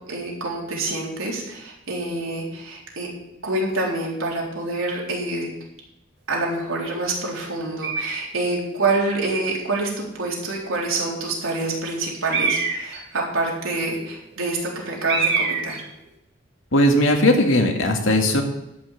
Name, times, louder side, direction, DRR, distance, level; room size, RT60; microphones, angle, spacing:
voice 1, 0.1-3.1 3.4-5.5 6.3-15.8, right 2 dB, 85° right, -3 dB, 4.0 m, -26 dB
sound 1, 7.8-8.3 12.3-13.0 13.9-14.0 14.2-14.3 15.1-15.7, right 5 dB, 55° right, 2.1 m, -24 dB
voice 2, 16.7-18.4, left 1 dB, 75° left, 3 dB, 2.1 m, -18 dB
13.0 x 5.9 x 8.4 m, 0.87 s
head